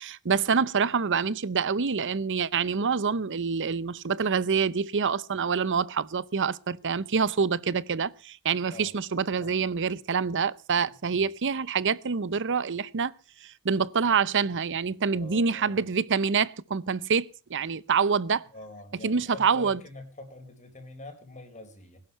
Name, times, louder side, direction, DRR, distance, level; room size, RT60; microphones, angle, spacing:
voice 1, 0.0-13.1 13.4-18.4 19.0-19.8, right 5 dB, 55° right, 0.7 m, -26 dB
voice 2, 15.1-15.8 18.5-22.0, left 2 dB, 35° left, 4.2 m, -45 dB
20.5 x 11.5 x 5.6 m
head